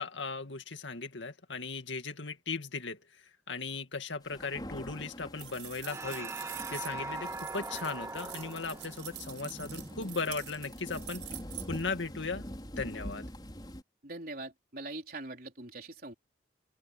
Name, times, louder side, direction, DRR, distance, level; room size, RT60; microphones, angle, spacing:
voice 1, 0.0-3.2 3.5-6.3 6.7-11.2 11.7-13.3, left 4 dB, 85° left, 2.2 m, -37 dB
sound 1, 4.2-13.8, equal, 25° left, 5.3 m, -45 dB
sound 2, 5.4-11.9, right 16 dB, 85° right, 4.5 m, -46 dB
sound 3, 5.8-10.6, right 2 dB, 15° right, 0.8 m, -42 dB
voice 2, 14.0-16.1, right 2 dB, 50° right, 4.3 m, -42 dB
open air
head